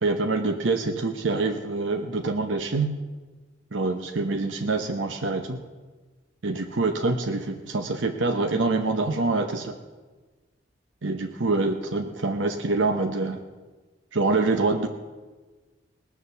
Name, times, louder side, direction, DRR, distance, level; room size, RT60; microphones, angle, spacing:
voice 1, 0.0-2.9 3.7-5.6 6.4-9.7 11.0-13.4 14.1-14.9, right 3 dB, 85° right, 5 dB, 0.9 m, -25 dB
19.0 x 7.3 x 6.8 m, 1.3 s
head